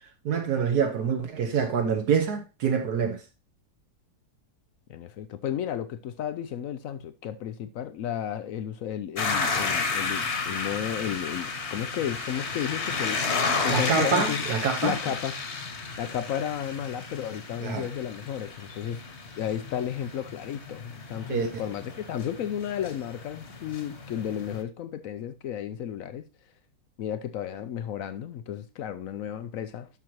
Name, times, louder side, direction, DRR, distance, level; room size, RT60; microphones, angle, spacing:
voice 1, 0.2-3.2 13.7-14.9 17.6-17.9 21.3-21.5, right 6 dB, 65° right, 1.2 m, -26 dB
voice 2, 4.9-14.4 14.8-15.7 16.0-19.0 19.4-26.3 27.0-29.9, left 10 dB, 75° left, 0.7 m, -33 dB
sound 1, 9.2-24.6, left 4 dB, 40° left, 1.2 m, -32 dB
11.5 x 5.9 x 3.0 m
omnidirectional pair, 2.0 m